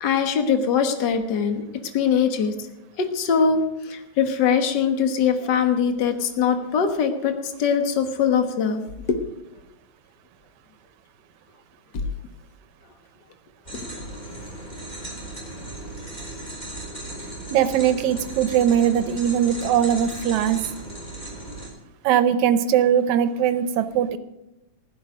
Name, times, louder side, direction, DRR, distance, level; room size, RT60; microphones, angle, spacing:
voice 1, 0.0-1.6 1.9-2.5 3.0-7.3 7.6-8.8 9.1-9.2 11.9-12.0, left 6 dB, 55° left, 6 dB, 1.2 m, -22 dB
sound 1, 13.6-21.7, right 2 dB, 15° left, 4.3 m, -36 dB
voice 2, 17.5-20.6 22.0-24.2, right 9 dB, 75° right, 11 dB, 1.9 m, -20 dB
15.5 x 12.0 x 5.1 m, 0.93 s
omnidirectional pair, 3.6 m